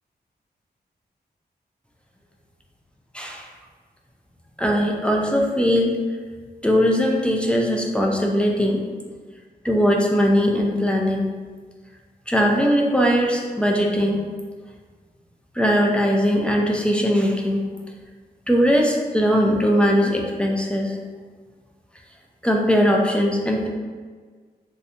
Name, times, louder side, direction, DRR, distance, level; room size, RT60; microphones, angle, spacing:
voice 1, 3.1-3.5 4.6-5.9 6.6-8.8 9.6-11.3 12.3-14.3 15.5-17.6 18.5-21.0 22.4-23.7, equal, 5° left, -1 dB, 0.3 m, -20 dB
3.2 x 2.7 x 2.7 m, 1.5 s
wide cardioid pair, 140°, 17 cm